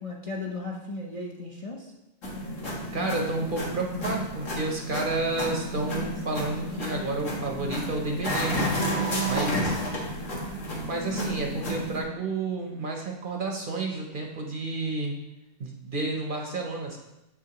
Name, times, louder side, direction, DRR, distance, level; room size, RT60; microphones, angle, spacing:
voice 1, 0.0-1.9 8.8-9.8, left 3 dB, 35° left, -2 dB, 0.6 m, -36 dB
sound 1, 2.2-12.0, equal, 85° left, 1.7 m, -31 dB
voice 2, 2.9-8.7 9.3-9.8 10.9-15.2 15.6-17.0, right 3 dB, 50° right, 1 dB, 0.8 m, -31 dB
7.2 x 6.1 x 2.9 m, 0.94 s
omnidirectional pair, 1.3 m